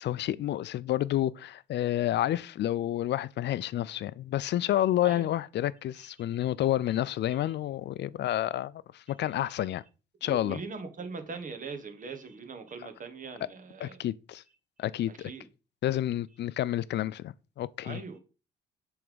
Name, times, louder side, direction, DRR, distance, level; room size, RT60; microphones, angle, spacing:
voice 1, 0.0-9.8 10.2-10.6 13.8-14.4 14.8-15.3 15.8-18.0, left 13 dB, 60° left, 0.4 m, -29 dB
voice 2, 9.3-9.7 10.2-14.1 15.1-15.4 17.8-18.2, right 4 dB, 40° right, 1.3 m, -41 dB
7.1 x 3.5 x 5.0 m
cardioid pair, 90°, 20 cm